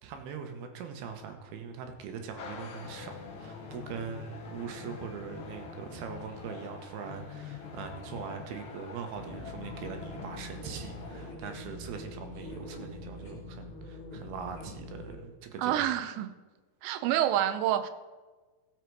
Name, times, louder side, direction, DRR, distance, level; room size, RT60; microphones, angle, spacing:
voice 1, 0.0-15.8, right 6 dB, 70° right, 5 dB, 2.8 m, -41 dB
sound 1, 2.4-11.3, left 5 dB, 85° left, 1.1 m, -45 dB
sound 2, 9.1-15.1, left 2 dB, 20° left, 3.0 m, -44 dB
voice 2, 15.6-16.3 16.8-17.9, right 11 dB, 90° right, 11 dB, 3.0 m, -27 dB
16.0 x 7.5 x 4.7 m, 1.3 s
omnidirectional pair, 4.9 m